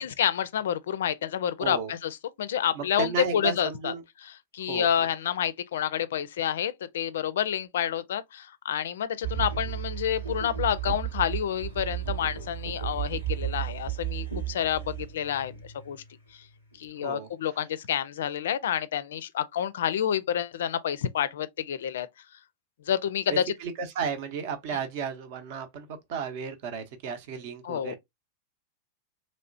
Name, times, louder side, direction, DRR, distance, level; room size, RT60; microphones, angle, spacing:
voice 1, 0.0-3.9 4.2-15.5 15.8-16.0 16.8-22.1 22.9-23.4 27.6-27.9, left 9 dB, 60° left, 0.4 m, -29 dB
voice 2, 1.6-1.9 2.7-4.0 4.7-5.1 17.0-17.6 23.3-27.9, right 6 dB, 50° right, 0.7 m, -34 dB
sound 1, 9.2-16.2 16.7-16.8, right 12 dB, 90° right, 1.6 m, -34 dB
3.1 x 2.8 x 2.5 m
figure-of-eight pair, 90°, 0 cm